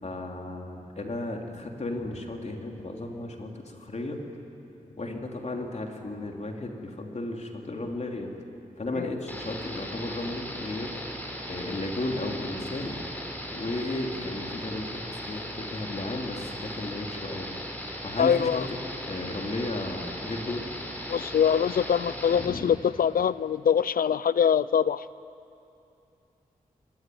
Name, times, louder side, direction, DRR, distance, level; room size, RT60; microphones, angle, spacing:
voice 1, 0.0-4.2 5.0-8.3 8.8-10.9 11.5-13.0 13.5-17.5 18.0-18.8 19.1-20.7 22.4-22.6, left 2 dB, 50° left, 2 dB, 3.3 m, -34 dB
sound 1, 9.3-22.5, equal, 10° left, 5.1 m, -38 dB
voice 2, 18.2-18.6 21.1-25.1, left 8 dB, 75° left, 18 dB, 0.5 m, -23 dB
23.0 x 19.5 x 9.5 m, 2.8 s
cardioid pair, 50°, 15 cm